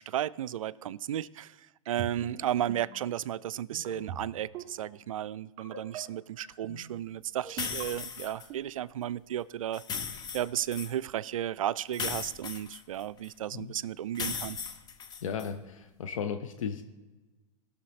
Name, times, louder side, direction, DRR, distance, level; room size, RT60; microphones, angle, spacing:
voice 1, 0.0-14.6, right 11 dB, 80° right, 18 dB, 0.4 m, -34 dB
sound 1, 1.9-2.3 2.7-3.0 3.7-4.2 4.5-4.8 5.6-6.0 6.4-6.8 7.4-7.8 8.3-8.6, right 9 dB, 40° right, 1.8 m, -39 dB
sound 2, 7.6-8.5 9.7-10.9 11.9-13.3 14.1-15.5, left 6 dB, 25° left, 0.8 m, -37 dB
voice 2, 15.2-16.8, left 7 dB, 75° left, 7 dB, 0.9 m, -35 dB
17.5 x 6.5 x 4.1 m, 1.1 s
hypercardioid pair, 115°, 17 cm